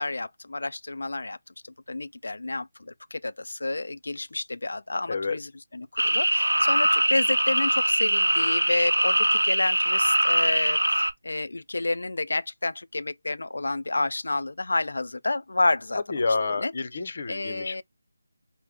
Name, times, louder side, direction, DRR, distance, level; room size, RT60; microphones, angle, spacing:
voice 1, 0.0-1.4 1.9-16.0 16.6-16.7 17.3-17.8, left 2 dB, 65° left, 0.4 m, -30 dB
sound 1, 6.0-11.1, right 1 dB, 85° right, 0.6 m, -22 dB
voice 2, 16.1-17.8, left 4 dB, 45° left, 0.7 m, -29 dB
5.6 x 2.1 x 3.4 m
figure-of-eight pair, 160°, 0 cm